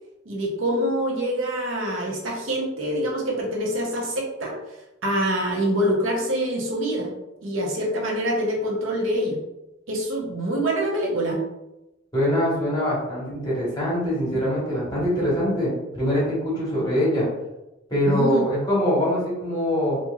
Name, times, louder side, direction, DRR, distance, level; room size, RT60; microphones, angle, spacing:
voice 1, 0.3-4.5 5.0-7.1 7.4-9.4 9.9-11.4 18.0-18.4, equal, 90° right, -1 dB, 0.7 m, -25 dB
voice 2, 12.1-17.3 17.9-20.0, equal, 20° left, -6 dB, 1.3 m, -23 dB
2.9 x 2.5 x 2.3 m, 0.96 s
head